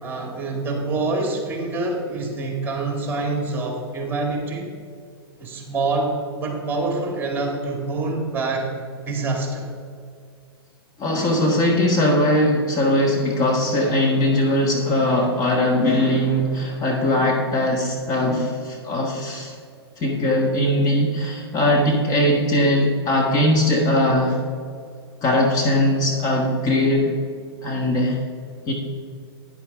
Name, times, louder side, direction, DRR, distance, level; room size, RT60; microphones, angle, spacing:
voice 1, 0.0-4.7 5.4-8.7 9.0-9.7, right 3 dB, 15° right, 1 dB, 2.4 m, -26 dB
voice 2, 11.0-19.5 20.0-24.4 25.2-27.2 27.6-28.2 28.7-28.8, left 1 dB, 30° left, 0 dB, 1.5 m, -20 dB
11.0 x 9.9 x 3.6 m, 2.2 s
hypercardioid pair, 115°, 14 cm